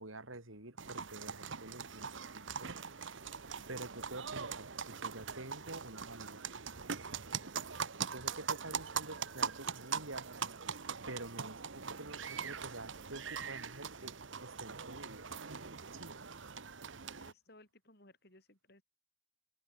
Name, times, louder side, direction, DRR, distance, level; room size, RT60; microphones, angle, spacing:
voice 1, 0.0-2.7 3.7-7.4 8.1-14.1 14.4-15.3 15.9-16.3, right 2 dB, 90° right, 6.7 m, -49 dB
sound 1, 0.8-17.3, right 6 dB, 70° right, 1.2 m, -42 dB
voice 2, 17.2-18.8, left 1 dB, 50° left, 7.8 m, -61 dB
open air
head